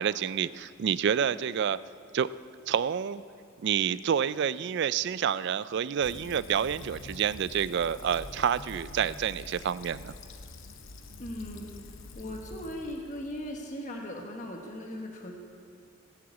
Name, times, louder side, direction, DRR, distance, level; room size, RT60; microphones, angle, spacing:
voice 1, 0.0-1.8 2.1-2.3 2.7-3.2 3.6-10.1, right 8 dB, 55° right, 16 dB, 0.3 m, -28 dB
Fill (with liquid), 6.0-13.7, left 3 dB, 65° left, 0.8 m, -46 dB
voice 2, 11.2-11.8 12.1-15.3, left 1 dB, 35° left, 1 dB, 1.3 m, -38 dB
16.5 x 7.7 x 8.2 m, 2.3 s
head